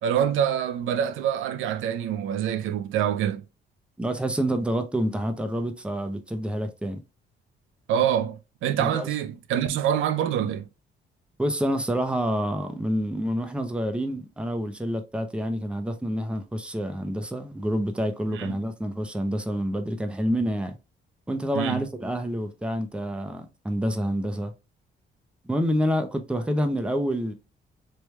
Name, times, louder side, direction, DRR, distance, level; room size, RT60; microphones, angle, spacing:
voice 1, 0.0-3.4 7.9-10.7 18.3-18.6 21.5-21.8, right 9 dB, 80° right, 0.4 m, -26 dB
voice 2, 4.0-7.0 8.8-9.1 11.4-20.8 21.3-24.5 25.4-27.3, equal, 5° right, 0.5 m, -28 dB
3.2 x 2.2 x 3.1 m
cardioid pair, 90°, 20 cm